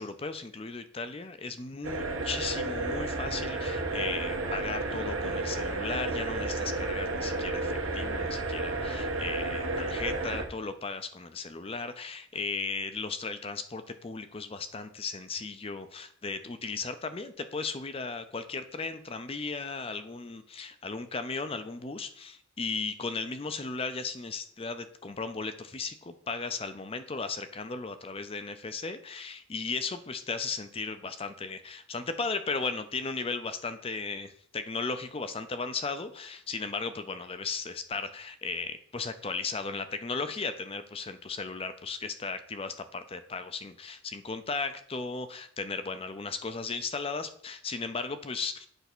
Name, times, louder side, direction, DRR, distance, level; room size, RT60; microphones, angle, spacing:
voice 1, 0.0-48.7, left 4 dB, 30° left, 10 dB, 0.5 m, -36 dB
sound 1, 1.8-10.4, right 2 dB, 75° right, 1.3 m, -32 dB
8.0 x 3.5 x 6.1 m, 0.63 s
head